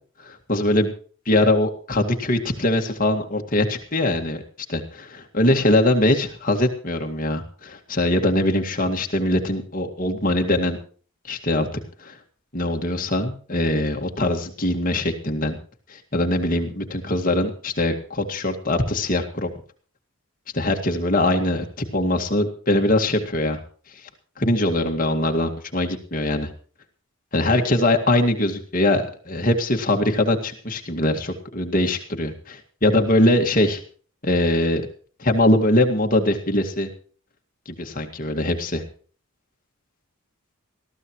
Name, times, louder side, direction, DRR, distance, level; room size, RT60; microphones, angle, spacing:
voice 1, 0.2-0.9 1.3-4.4 4.7-10.8 11.3-11.7 12.0-12.2 12.5-15.6 15.9-19.5 20.5-23.6 24.4-26.5 27.3-32.3 32.8-33.8 34.2-34.8 35.2-36.9 37.8-38.8, left 1 dB, 40° left, 4 dB, 2.1 m, -22 dB
20.5 x 14.5 x 3.1 m, 0.43 s
head